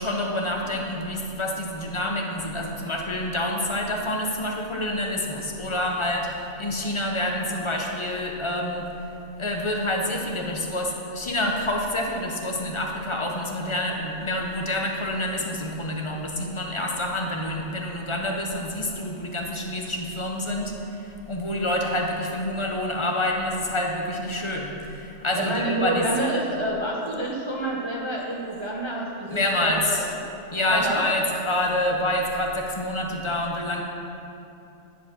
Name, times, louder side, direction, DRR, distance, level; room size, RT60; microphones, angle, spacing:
voice 1, 0.0-8.9 9.4-26.2 29.3-30.1 30.5-33.8, left 1 dB, 30° left, 1 dB, 0.7 m, -27 dB
voice 2, 25.3-30.2 30.7-31.0, right 1 dB, 25° right, -3 dB, 0.7 m, -28 dB
10.5 x 4.8 x 6.1 m, 2.8 s
omnidirectional pair, 1.4 m